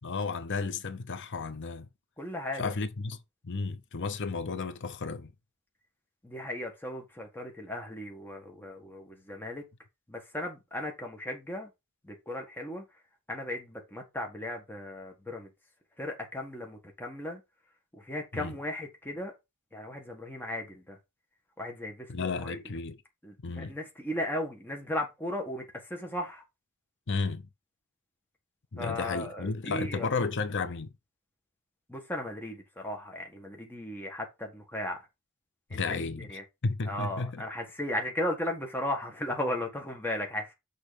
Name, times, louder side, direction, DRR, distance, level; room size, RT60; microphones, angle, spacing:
voice 1, 0.0-1.9 2.5-3.2 3.4-5.3 18.3-18.5 22.1-23.0 23.4-23.8 27.1-27.5 28.7-30.9 35.7-36.3 36.6-37.4, left 4 dB, 55° left, 0.8 m, -33 dB
voice 2, 2.2-2.7 6.2-9.6 10.1-11.7 12.0-12.8 13.3-15.5 16.0-17.4 17.9-19.3 19.7-21.0 21.6-22.6 23.2-26.4 28.8-30.1 31.9-35.1 35.7-36.4 36.9-40.5, left 1 dB, 10° left, 1.6 m, -36 dB
6.4 x 4.0 x 5.1 m
head